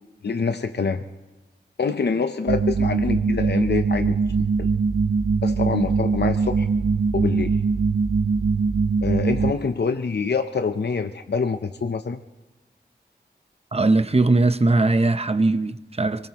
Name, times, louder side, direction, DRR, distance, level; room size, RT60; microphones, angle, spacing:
voice 1, 0.2-1.0 1.8-4.2 4.6-4.7 5.4-6.7 7.1-7.6 9.0-12.2, left 5 dB, 70° left, 0.7 m, -25 dB
sound 1, 2.5-9.5, right 4 dB, 80° right, 0.5 m, -22 dB
voice 2, 13.7-16.3, right 2 dB, 35° right, 0.8 m, -20 dB
25.0 x 18.5 x 3.0 m
wide cardioid pair, 50°, 18 cm